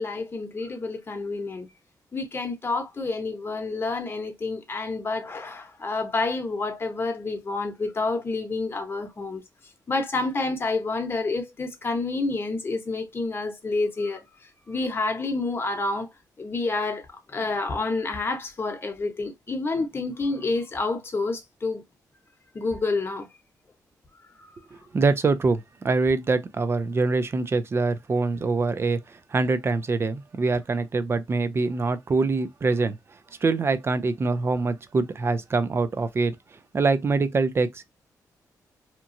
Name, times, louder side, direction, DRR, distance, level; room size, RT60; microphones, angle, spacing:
voice 1, 0.0-1.7 2.1-9.4 9.9-14.2 14.7-16.1 16.4-21.8 22.5-23.3 24.4-24.5, left 3 dB, 35° left, 0.9 m, -28 dB
voice 2, 24.7-33.0 33.4-36.4 36.7-37.8, right 3 dB, 35° right, 0.5 m, -24 dB
2.9 x 2.3 x 2.6 m
cardioid pair, 90°, 7 cm